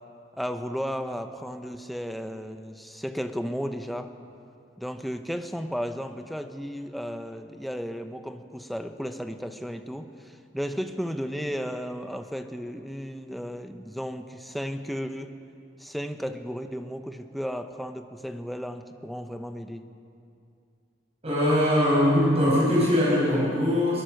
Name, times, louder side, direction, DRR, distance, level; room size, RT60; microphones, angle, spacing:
voice 1, 0.4-4.1 4.8-15.3 15.8-19.8, equal, ahead, 6 dB, 1.0 m, -34 dB
voice 2, 21.2-24.0, left 1 dB, 35° right, -6 dB, 6.2 m, -21 dB
22.5 x 21.5 x 6.7 m, 2.5 s
head